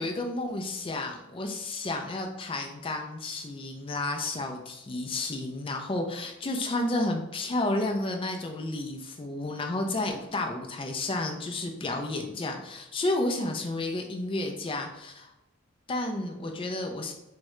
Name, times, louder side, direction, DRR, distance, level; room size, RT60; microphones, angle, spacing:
voice 1, 0.0-15.3 15.9-17.1, left 2 dB, 25° left, 3 dB, 0.3 m, -31 dB
3.5 x 2.1 x 2.9 m, 0.91 s
head